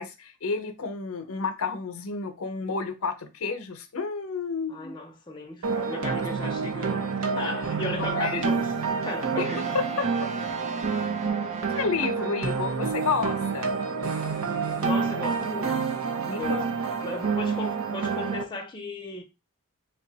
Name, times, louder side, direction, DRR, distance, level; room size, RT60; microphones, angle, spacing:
voice 1, 0.0-4.9 7.9-8.5 9.4-9.5 10.0-10.3 11.7-13.7 16.3-16.6, left 4 dB, 75° left, 0.6 m, -31 dB
voice 2, 4.7-8.7 9.0-9.8 12.4-12.7 14.7-15.8 16.3-16.7 17.0-19.2, left 2 dB, 20° left, 0.6 m, -35 dB
sound 1, 5.6-18.4, right 5 dB, 70° right, 0.7 m, -28 dB
sound 2, 9.4-12.7, right 4 dB, 30° right, 0.5 m, -38 dB
3.4 x 2.2 x 3.9 m
head